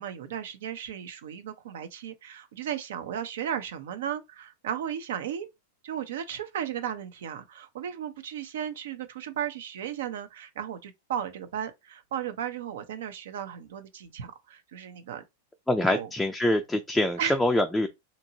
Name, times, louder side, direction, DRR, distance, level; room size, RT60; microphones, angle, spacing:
voice 1, 0.0-5.5 5.8-15.2 15.8-16.1 17.2-17.4, right 9 dB, 70° right, 0.6 m, -35 dB
voice 2, 15.7-17.9, left 1 dB, 5° left, 0.4 m, -25 dB
2.8 x 2.6 x 2.7 m
hypercardioid pair, 110°, 0 cm